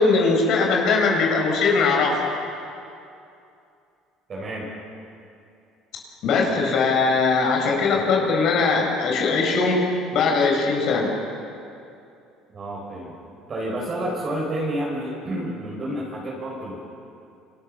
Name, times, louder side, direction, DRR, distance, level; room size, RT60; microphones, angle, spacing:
voice 1, 0.0-2.2 6.2-9.8 10.1-11.1, left 4 dB, 55° left, 0 dB, 6.8 m, -20 dB
voice 2, 4.3-4.7 12.5-13.1 13.5-16.8, right 1 dB, 30° right, -5 dB, 5.9 m, -29 dB
28.0 x 26.0 x 6.9 m, 2.6 s
cardioid pair, 150°, 0 cm